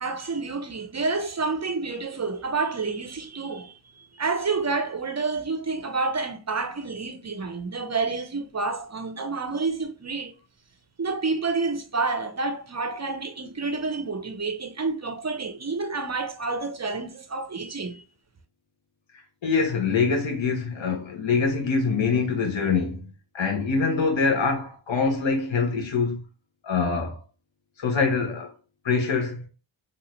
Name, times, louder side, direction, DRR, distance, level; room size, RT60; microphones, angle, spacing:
voice 1, 0.0-3.7 4.1-10.3 11.0-18.0, right 4 dB, 35° right, 0.6 m, -29 dB
voice 2, 19.4-23.0 23.3-26.2 26.6-27.2 27.8-28.5 28.8-29.4, left 4 dB, 75° left, 1.1 m, -24 dB
2.8 x 2.4 x 3.0 m
cardioid pair, 45°, 47 cm